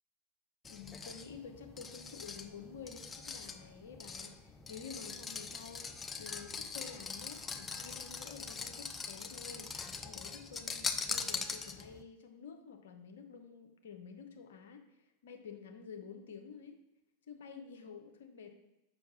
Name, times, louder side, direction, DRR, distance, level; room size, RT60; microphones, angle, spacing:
sound 1, 0.6-12.0, left 5 dB, 15° left, 0.4 m, -42 dB
voice 1, 0.7-14.8 15.2-16.8 17.3-18.5, left 6 dB, 60° left, 5 dB, 0.8 m, -50 dB
6.7 x 5.5 x 2.9 m, 0.94 s
figure-of-eight pair, 90°, 0 cm